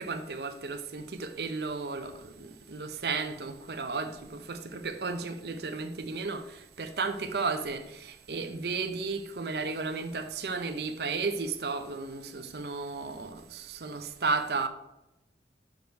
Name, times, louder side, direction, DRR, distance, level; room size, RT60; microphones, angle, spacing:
voice 1, 0.0-14.7, right 4 dB, 60° right, 0.7 m, -34 dB
6.3 x 5.2 x 4.5 m
head